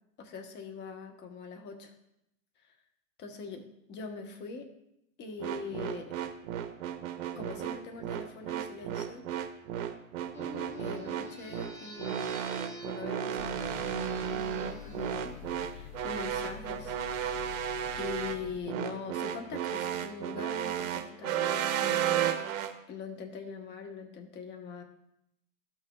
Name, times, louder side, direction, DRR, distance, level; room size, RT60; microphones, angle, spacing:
voice 1, 0.2-1.9 3.2-4.7 5.2-6.2 7.3-9.3 10.8-12.3 12.8-15.3 15.6-17.5 17.9-22.4 22.9-24.8, left 5 dB, 25° left, 3 dB, 1.1 m, -42 dB
sound 1, 5.4-22.7, right 9 dB, 60° right, 0.9 m, -33 dB
sound 2, 10.3-16.4, left 2 dB, 5° left, 2.9 m, -47 dB
sound 3, 13.4-18.6, left 11 dB, 75° left, 0.5 m, -47 dB
13.5 x 6.2 x 2.3 m, 0.81 s
hypercardioid pair, 135°, 43 cm